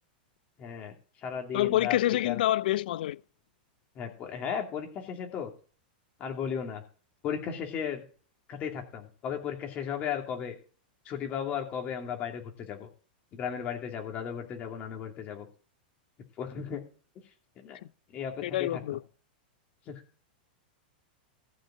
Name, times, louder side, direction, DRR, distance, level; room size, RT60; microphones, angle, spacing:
voice 1, 0.6-1.0 1.2-2.0 2.2-2.4 4.0-5.5 6.2-6.8 7.2-8.0 8.5-10.5 11.0-12.9 13.3-15.5 16.4-16.8 17.6-17.8 18.1-18.8 19.9-20.0, left 8 dB, 30° left, 2.6 m, -35 dB
voice 2, 1.5-3.2 18.4-19.0, left 14 dB, 70° left, 0.5 m, -27 dB
14.5 x 5.1 x 7.5 m
supercardioid pair, 155°, 5 cm